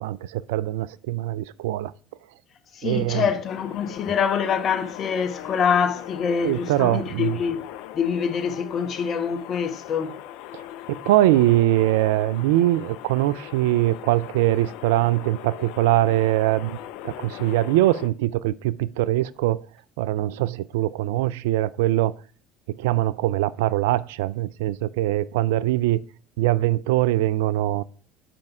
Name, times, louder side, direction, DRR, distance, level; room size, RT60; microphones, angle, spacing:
voice 1, 0.0-1.9 2.8-3.2 6.4-7.4 10.5-10.6 10.9-16.8 17.0-19.6 20.0-22.1 22.8-26.0 26.4-27.8, right 15 dB, 75° right, 0.3 m, -22 dB
voice 2, 2.7-7.6 7.9-10.1, left 7 dB, 45° left, 1.2 m, -25 dB
sound 1, 3.4-18.1, left 12 dB, 70° left, 0.5 m, -40 dB
7.6 x 5.3 x 4.7 m
hypercardioid pair, 70°, 0 cm